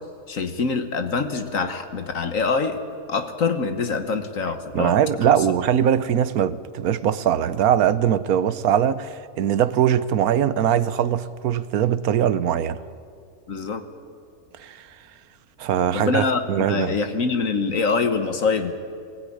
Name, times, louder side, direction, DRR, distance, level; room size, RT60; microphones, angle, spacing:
voice 1, 0.3-2.8 3.1-5.0 5.3-5.4 13.5-13.8 15.9-18.7, left 4 dB, 65° left, 1.6 m, -24 dB
voice 2, 4.7-12.8 14.6-14.9 15.6-17.0, right 9 dB, 85° right, 1.3 m, -21 dB
21.5 x 16.0 x 10.0 m
omnidirectional pair, 1.5 m